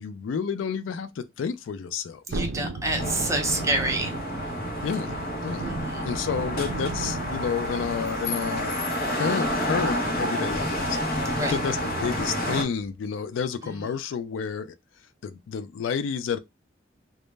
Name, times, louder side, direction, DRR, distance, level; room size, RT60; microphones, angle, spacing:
voice 1, 0.0-2.4 4.8-5.7 6.0-14.7 15.2-16.4, left 6 dB, 80° left, 0.3 m, -30 dB
voice 2, 2.3-4.1 5.6-6.2 11.4-11.6, right 2 dB, 15° right, 0.6 m, -28 dB
Thunderstorm, 2.3-12.5 12.9-13.0, right 3 dB, 75° right, 0.4 m, -37 dB
sound 1, 3.0-12.6, equal, 55° left, 0.7 m, -29 dB
2.1 x 2.0 x 3.2 m
head